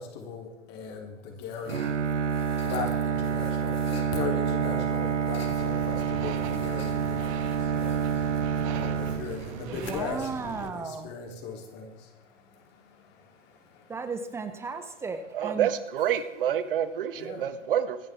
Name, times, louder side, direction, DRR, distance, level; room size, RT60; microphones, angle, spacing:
voice 1, 0.0-1.9 2.6-8.0 8.7-13.9 17.1-17.4, left 5 dB, 30° left, 2 dB, 3.4 m, -38 dB
sound 1, 1.5-11.5, left 6 dB, 55° left, 2.7 m, -50 dB
Bowed string instrument, 1.7-9.9, right 7 dB, 70° right, 0.8 m, -28 dB
sound 2, 5.5-10.7, right 10 dB, 25° right, 1.2 m, -42 dB
voice 2, 9.7-11.1 13.9-15.7, right 4 dB, 5° right, 9 dB, 0.7 m, -35 dB
voice 3, 15.3-18.0, right 9 dB, 45° right, 12 dB, 1.6 m, -28 dB
25.5 x 10.5 x 3.6 m, 1.0 s
figure-of-eight pair, 115°, 37 cm